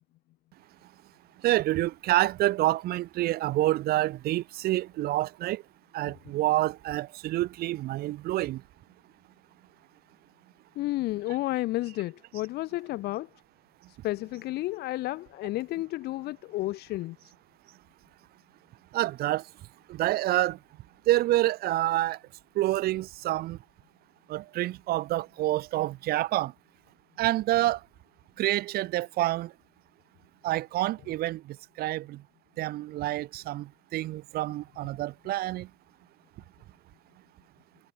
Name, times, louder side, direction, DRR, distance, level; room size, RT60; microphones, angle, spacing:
voice 1, 1.4-5.6 5.9-8.6 18.9-19.4 19.9-20.6 21.1-22.2 22.6-23.6 24.3-26.5 27.2-27.8 28.4-29.5 30.4-31.4 31.8-32.2 32.6-33.7 33.9-35.7, right 16 dB, 65° right, 0.5 m, -27 dB
voice 2, 10.8-13.3 13.9-17.3, left 17 dB, 70° left, 0.5 m, -32 dB
cardioid pair, 110°, 17 cm